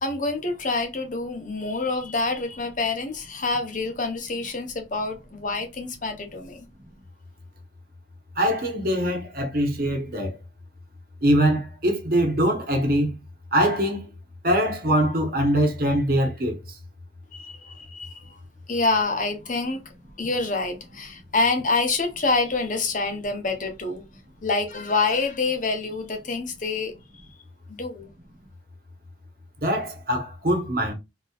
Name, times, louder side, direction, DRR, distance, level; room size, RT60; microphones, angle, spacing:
voice 1, 0.0-6.7 17.3-18.4 18.7-19.8 20.2-24.0 24.4-26.9 27.7-28.1, left 3 dB, 45° left, 0.8 m, -27 dB
voice 2, 8.4-10.4 11.2-13.1 13.5-14.0 14.4-16.6 29.6-30.9, equal, 50° right, 1.1 m, -23 dB
4.0 x 2.9 x 2.4 m
head